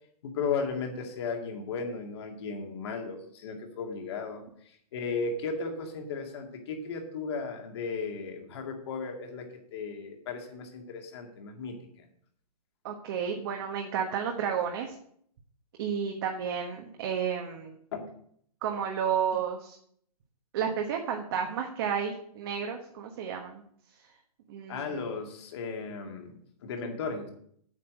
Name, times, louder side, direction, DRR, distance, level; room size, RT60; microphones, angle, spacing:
voice 1, 0.2-9.5 9.7-12.1 17.9-18.0 24.7-27.3, left 4 dB, 40° left, 3 dB, 2.2 m, -35 dB
voice 2, 12.8-14.9 15.8-17.7 18.6-19.8 20.5-23.6 24.5-25.0, right 7 dB, 35° right, 2 dB, 1.3 m, -31 dB
8.6 x 5.9 x 8.1 m, 0.64 s
hypercardioid pair, 165°, 20 cm